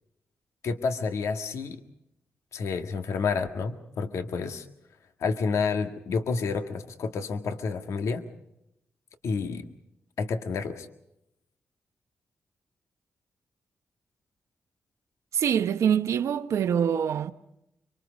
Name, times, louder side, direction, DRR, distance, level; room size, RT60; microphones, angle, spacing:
voice 1, 0.6-1.8 2.5-4.6 5.2-8.2 9.2-9.7 10.2-10.9, left 5 dB, 80° left, 1.7 m, -29 dB
voice 2, 15.3-17.3, right 8 dB, 85° right, 1.1 m, -24 dB
25.0 x 25.0 x 5.3 m
cardioid pair, 70°, 5 cm